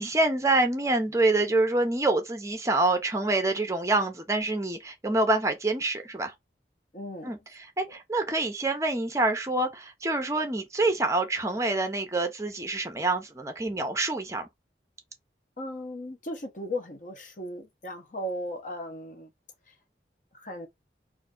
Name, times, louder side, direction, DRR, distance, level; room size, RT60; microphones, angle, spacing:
voice 1, 0.0-6.3 7.2-14.4, right 2 dB, 15° right, 0.5 m, -26 dB
voice 2, 6.9-7.3 15.6-19.3 19.7-19.8 20.3-20.7, equal, 45° left, 0.8 m, -36 dB
3.2 x 2.5 x 3.7 m
head